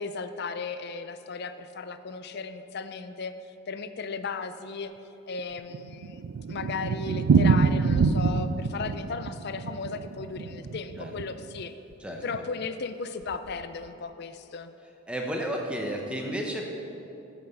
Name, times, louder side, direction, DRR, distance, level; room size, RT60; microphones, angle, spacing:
voice 1, 0.0-3.3 3.7-4.9 5.3-11.7 12.2-14.7, left 4 dB, 50° left, 10 dB, 0.4 m, -36 dB
Thunder, 5.4-11.7 11.9-12.0 12.3-12.4 12.6-12.7 13.3-13.6, right 5 dB, 65° right, 0.3 m, -26 dB
voice 2, 15.1-16.7, equal, 5° right, 1 dB, 0.9 m, -32 dB
12.5 x 5.9 x 5.4 m, 3.0 s
head